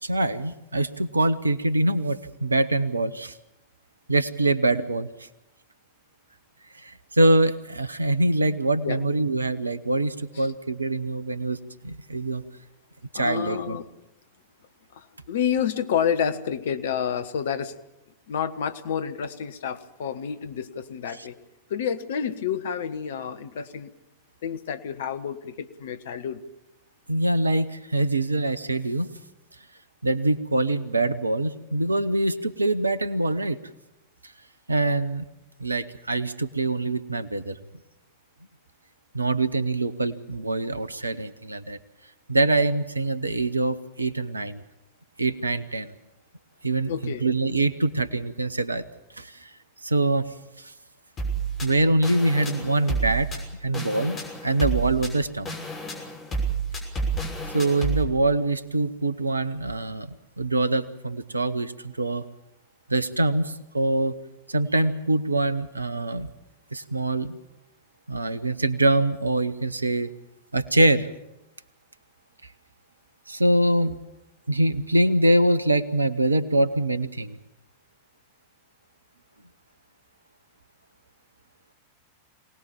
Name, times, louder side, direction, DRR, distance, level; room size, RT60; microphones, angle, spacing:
voice 1, 0.0-3.3 4.1-5.1 6.8-11.6 11.8-12.4 13.1-13.8 21.2-21.3 27.1-29.1 30.0-33.6 34.7-35.3 35.6-37.6 39.1-41.8 42.3-44.6 45.2-45.9 46.6-48.8 49.2-49.5 49.8-50.3 51.6-53.3 53.6-55.5 57.5-62.2 62.9-64.1 64.5-66.3 66.7-67.4 68.1-70.1 70.5-71.1 73.3-74.0 74.5-77.4, right 2 dB, 80° right, 15 dB, 1.0 m, -24 dB
voice 2, 13.1-13.9 14.9-17.7 18.3-21.4 21.7-23.9 24.4-26.4 46.9-47.2, left 8 dB, 60° left, 11 dB, 1.2 m, -29 dB
sound 1, 51.2-58.0, right 4 dB, 30° left, 6.1 m, -30 dB
23.5 x 19.0 x 7.2 m, 0.90 s
figure-of-eight pair, 90°, 0 cm